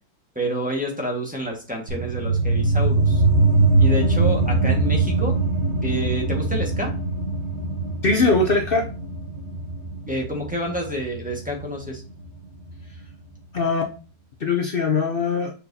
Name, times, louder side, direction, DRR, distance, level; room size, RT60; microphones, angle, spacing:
voice 1, 0.3-3.2 3.8-5.4 5.8-6.9 10.1-12.0, equal, 5° right, -1 dB, 1.3 m, -28 dB
sound 1, 1.9-13.0, right 3 dB, 50° right, 1.6 m, -22 dB
voice 2, 8.0-8.9 13.5-13.8 14.4-15.5, left 3 dB, 80° left, 3 dB, 0.5 m, -21 dB
6.9 x 5.4 x 2.8 m, 0.35 s
omnidirectional pair, 2.1 m